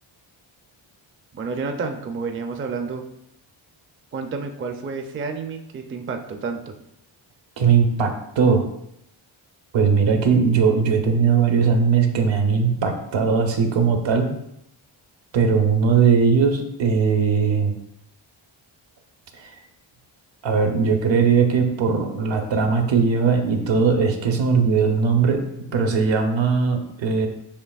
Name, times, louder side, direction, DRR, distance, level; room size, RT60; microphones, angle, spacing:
voice 1, 1.3-3.0 4.1-6.7, right 4 dB, 25° right, 5 dB, 0.4 m, -30 dB
voice 2, 7.6-8.6 9.7-14.3 15.3-17.7 19.4-19.5 20.4-25.4 25.7-27.3, right 5 dB, 65° right, 5 dB, 0.7 m, -19 dB
6.6 x 2.8 x 2.3 m, 0.80 s
cardioid pair, 70°, 49 cm